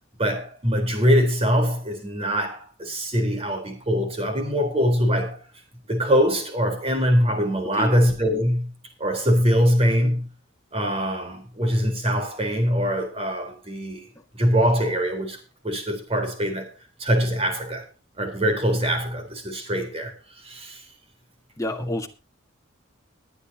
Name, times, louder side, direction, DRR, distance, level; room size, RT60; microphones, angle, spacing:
voice 1, 0.2-5.4 5.9-8.7 9.0-10.3 10.7-14.0 14.3-15.4 15.6-16.7 17.0-17.8 18.2-20.1 20.4-20.8, equal, 30° right, 4.1 m, -23 dB
voice 2, 21.6-22.1, left 1 dB, 15° left, 1.7 m, -29 dB
21.0 x 9.8 x 2.9 m
head